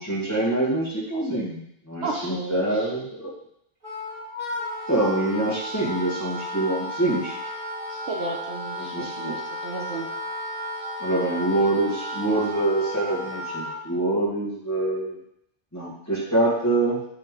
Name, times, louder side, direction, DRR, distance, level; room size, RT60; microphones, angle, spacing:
voice 1, 0.0-1.6 1.9-3.3 4.9-7.4 8.8-9.4 11.0-15.2 15.7-17.0, right 2 dB, 15° left, -7 dB, 1.8 m, -25 dB
voice 2, 2.0-2.9 7.9-10.1, right 2 dB, 65° right, -1 dB, 1.2 m, -33 dB
Wind instrument woodwind instrument, 3.8-13.8, left 1 dB, 40° right, 2.1 m, -33 dB
8.2 x 3.4 x 3.7 m, 0.73 s
omnidirectional pair, 1.2 m